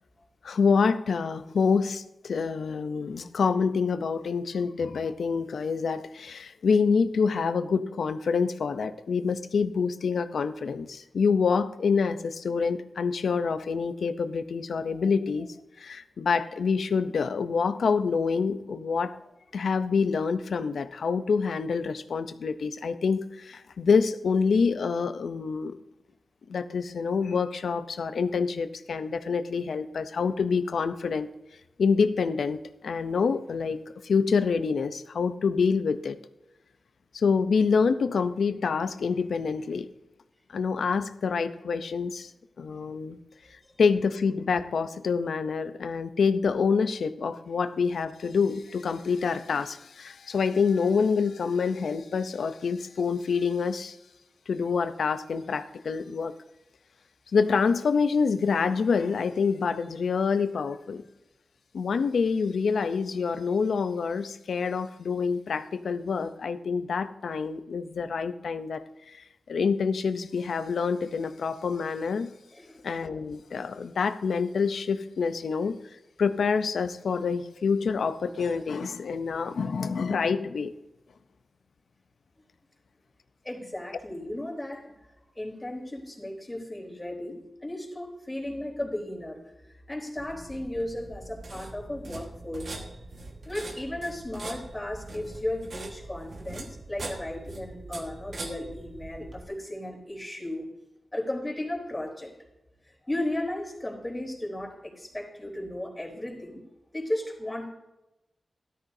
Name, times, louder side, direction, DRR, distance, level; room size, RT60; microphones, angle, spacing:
voice 1, 0.4-19.2 19.5-25.8 26.5-31.3 31.8-36.2 37.1-39.9 40.5-42.3 42.6-43.2 43.8-54.0 54.5-56.3 57.3-61.0 61.7-72.3 72.8-75.8 76.2-80.7, left 5 dB, 85° left, 11 dB, 0.6 m, -27 dB
voice 2, 72.5-72.9 83.4-84.9 85.4-92.8 93.4-100.7 101.1-102.3 102.8-106.6 106.9-107.7, left 1 dB, 20° left, -2 dB, 3.7 m, -35 dB
sound 1, 90.2-99.5, right 2 dB, 65° right, 1.5 m, -42 dB
13.5 x 12.5 x 2.7 m, 0.98 s
cardioid pair, 70°, 0 cm